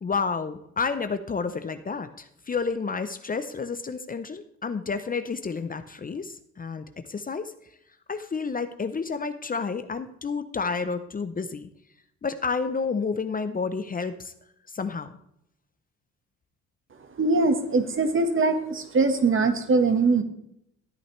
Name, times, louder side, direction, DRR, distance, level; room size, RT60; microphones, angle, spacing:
voice 1, 0.0-7.5 8.1-11.7 12.2-14.3 14.7-15.1, left 5 dB, 30° left, 10 dB, 0.7 m, -30 dB
voice 2, 17.2-20.2, right 3 dB, 40° right, 7 dB, 1.6 m, -22 dB
13.5 x 8.7 x 3.2 m, 0.75 s
cardioid pair, 90°, 30 cm